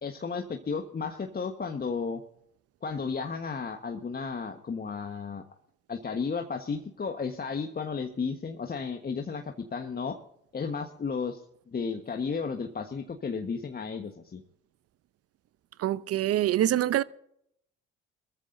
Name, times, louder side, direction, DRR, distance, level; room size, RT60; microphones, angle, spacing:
voice 1, 0.0-2.2 2.8-5.4 5.9-10.2 10.5-11.4 11.7-14.4, left 5 dB, 30° left, 1.4 m, -33 dB
voice 2, 15.8-17.0, right 13 dB, 55° right, 0.7 m, -25 dB
22.0 x 14.0 x 2.7 m
hypercardioid pair, 65°, 29 cm